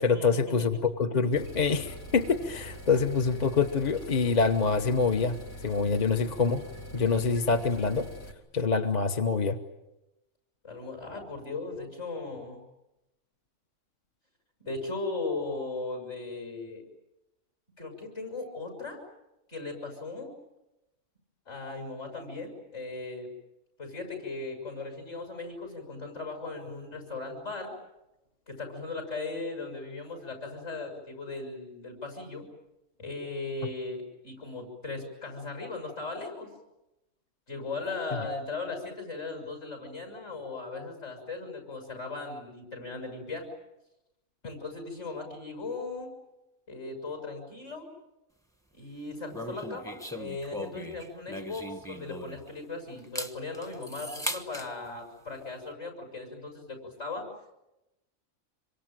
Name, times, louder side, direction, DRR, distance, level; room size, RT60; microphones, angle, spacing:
voice 1, 0.0-6.6 6.9-8.1 8.5-9.6, left 4 dB, 35° left, 5 dB, 1.1 m, -26 dB
sound 1, 1.3-8.3, left 1 dB, 85° left, 3.2 m, -44 dB
voice 2, 10.6-12.6 14.6-16.8 17.8-19.0 19.5-20.3 21.5-23.3 23.8-27.7 28.5-32.5 33.0-36.5 37.5-43.5 44.4-46.1 46.7-47.9 48.7-57.3, left 3 dB, 50° left, 3 dB, 7.1 m, -38 dB
sound 2, 49.3-52.6 53.0-54.7, equal, 5° left, 1.1 m, -38 dB
26.5 x 24.0 x 9.1 m, 0.96 s
omnidirectional pair, 1.5 m